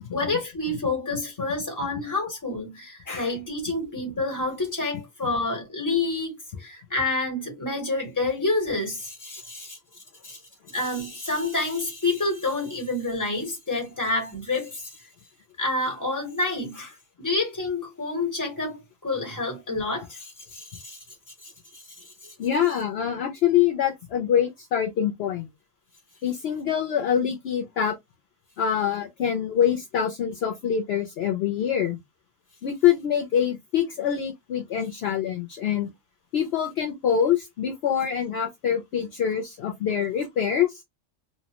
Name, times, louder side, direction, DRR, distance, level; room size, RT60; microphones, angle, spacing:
voice 1, 0.1-9.8 10.2-10.4 10.7-15.0 15.6-21.0 21.4-22.3, left 2 dB, 15° left, 1.1 m, -28 dB
voice 2, 22.4-25.5 26.2-27.9 28.6-32.0 32.6-35.9 36.3-40.8, left 9 dB, 65° left, 0.7 m, -25 dB
2.7 x 2.1 x 2.8 m
omnidirectional pair, 1.3 m